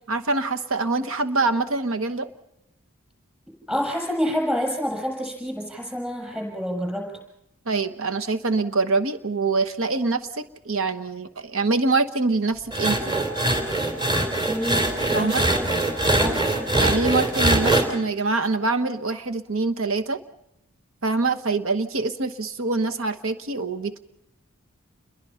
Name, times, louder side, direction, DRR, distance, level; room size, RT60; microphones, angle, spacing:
voice 1, 0.1-2.3 7.7-13.1 15.1-15.4 16.8-20.2 21.0-24.0, right 3 dB, 70° right, 8 dB, 1.2 m, -24 dB
voice 2, 3.7-7.2 14.5-15.7 16.2-16.5, equal, 5° right, 1 dB, 6.9 m, -28 dB
sound 1, 12.7-17.8, right 1 dB, 20° right, 3.4 m, -22 dB
29.0 x 22.5 x 5.7 m, 0.82 s
head